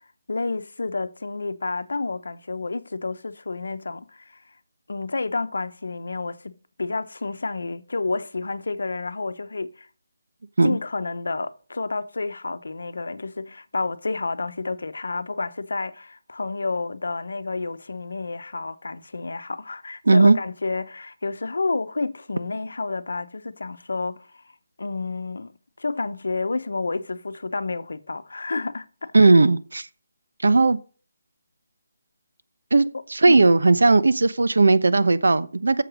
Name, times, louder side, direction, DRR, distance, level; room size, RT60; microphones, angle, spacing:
voice 1, 0.3-4.4 4.9-9.9 10.6-24.4 24.8-25.5 25.8-29.4 33.3-33.5, left 3 dB, 70° left, 0.9 m, -30 dB
voice 2, 20.0-20.4 29.1-29.9 30.4-30.8 32.7-35.8, right 3 dB, 70° right, 0.8 m, -17 dB
7.9 x 7.0 x 6.2 m
hypercardioid pair, 180°, 0 cm